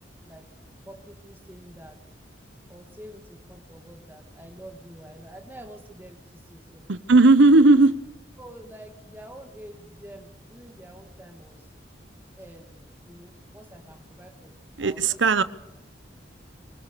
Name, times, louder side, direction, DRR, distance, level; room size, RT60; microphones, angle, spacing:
voice 1, 0.8-2.0 2.7-6.9 8.4-11.7 12.3-15.2, right 1 dB, 10° right, 4 dB, 1.7 m, -47 dB
voice 2, 6.9-7.9 14.8-15.4, right 3 dB, 85° right, 14 dB, 0.8 m, -16 dB
23.5 x 21.5 x 6.8 m, 0.94 s
head